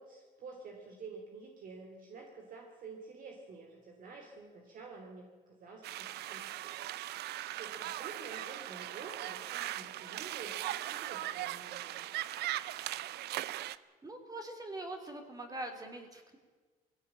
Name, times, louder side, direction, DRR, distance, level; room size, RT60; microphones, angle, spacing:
voice 1, 0.0-5.3 5.6-6.9 7.5-12.1, right 4 dB, 55° right, 2 dB, 3.1 m, -49 dB
sound 1, 5.8-13.8, right 14 dB, 75° right, 0.7 m, -39 dB
voice 2, 14.0-16.4, right 2 dB, 20° right, 4 dB, 3.2 m, -43 dB
20.5 x 16.5 x 8.9 m, 1.4 s
cardioid pair, 110°, 17 cm